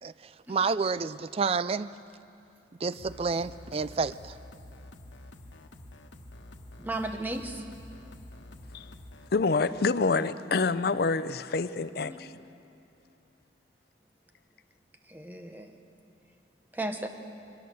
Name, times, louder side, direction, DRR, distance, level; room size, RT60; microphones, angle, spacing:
voice 1, 0.0-1.9 2.8-4.4, right 4 dB, 30° right, 0.4 m, -29 dB
sound 1, 2.9-9.3, left 1 dB, 85° left, 1.2 m, -48 dB
voice 2, 6.8-7.6 12.0-12.2 15.1-15.7 16.7-17.1, right 2 dB, 10° right, 1.0 m, -35 dB
voice 3, 9.3-12.3, left 4 dB, 55° left, 0.5 m, -27 dB
23.0 x 18.0 x 6.8 m
head